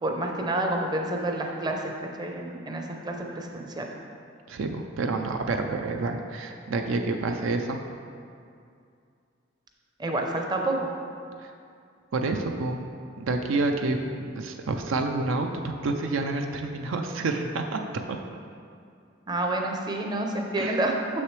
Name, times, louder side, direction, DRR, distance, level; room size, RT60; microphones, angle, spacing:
voice 1, 0.0-1.9 2.2-3.9 10.0-10.9 19.3-21.0, right 1 dB, 20° right, 2 dB, 0.5 m, -28 dB
voice 2, 4.5-7.8 11.4-11.5 12.1-12.8 13.2-18.2 20.6-20.8, right 3 dB, 85° right, 4 dB, 0.5 m, -28 dB
6.6 x 6.2 x 3.2 m, 2.4 s
head